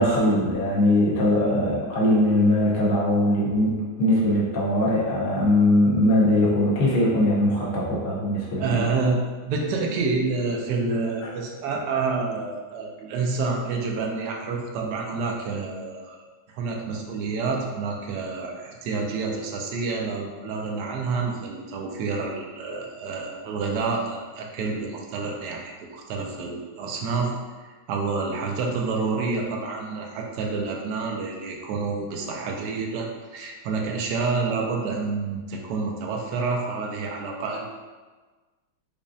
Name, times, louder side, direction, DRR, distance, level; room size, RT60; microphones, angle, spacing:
voice 1, 0.0-8.8 11.2-11.3, left 1 dB, 60° left, -6 dB, 0.6 m, -21 dB
voice 2, 8.6-16.2 16.5-27.3 27.9-37.7, right 4 dB, 75° right, 0 dB, 0.9 m, -28 dB
5.1 x 2.4 x 2.5 m, 1.3 s
omnidirectional pair, 2.2 m